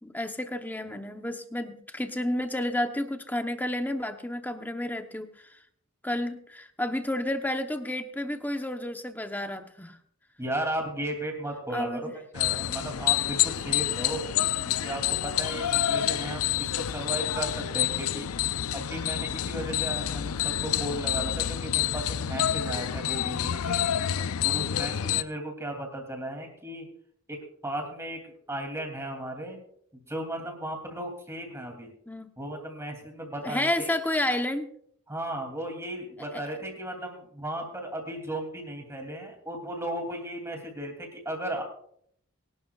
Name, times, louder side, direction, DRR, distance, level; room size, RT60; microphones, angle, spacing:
voice 1, 0.0-5.6 6.0-10.0 11.7-12.1 32.1-32.3 33.4-34.7 36.3-36.4, left 1 dB, 10° left, 6 dB, 0.9 m, -31 dB
voice 2, 10.4-14.2 14.6-18.3 18.7-23.8 24.4-26.9 27.3-27.4 27.6-28.2 28.5-29.6 30.1-31.9 32.4-33.9 35.1-41.6, right 1 dB, 15° right, 3 dB, 2.8 m, -35 dB
sound 1, 12.3-25.2, left 11 dB, 90° left, 0.5 m, -28 dB
23.5 x 12.0 x 2.4 m, 0.66 s
head